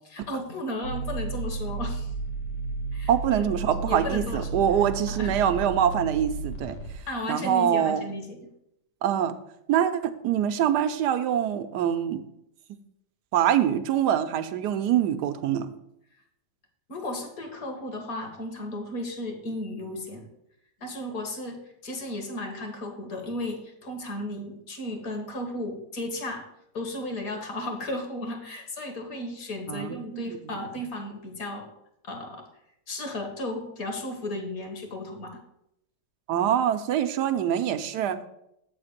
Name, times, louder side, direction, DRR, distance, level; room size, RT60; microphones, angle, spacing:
voice 1, 0.0-2.1 2.9-4.6 5.1-5.3 7.1-8.5 16.9-20.3 20.8-26.4 26.7-31.7 32.0-32.5 32.9-35.4, left 1 dB, 60° left, 3 dB, 1.8 m, -34 dB
sound 1, 0.8-7.1, right 3 dB, 85° left, 1.4 m, -33 dB
voice 2, 3.1-6.8 7.3-8.1 9.0-9.3 9.7-12.2 13.3-15.7 29.7-30.5 36.3-38.2, right 9 dB, 80° right, 10 dB, 1.2 m, -24 dB
7.9 x 4.2 x 6.5 m, 0.79 s
omnidirectional pair, 1.8 m